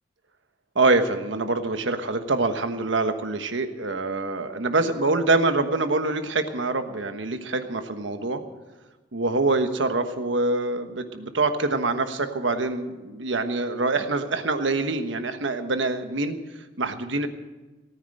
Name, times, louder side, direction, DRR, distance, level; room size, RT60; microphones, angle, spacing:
voice 1, 0.7-8.4 9.1-16.4 16.8-17.3, right 3 dB, 90° right, 8 dB, 1.3 m, -25 dB
18.0 x 9.6 x 7.8 m, 1.2 s
head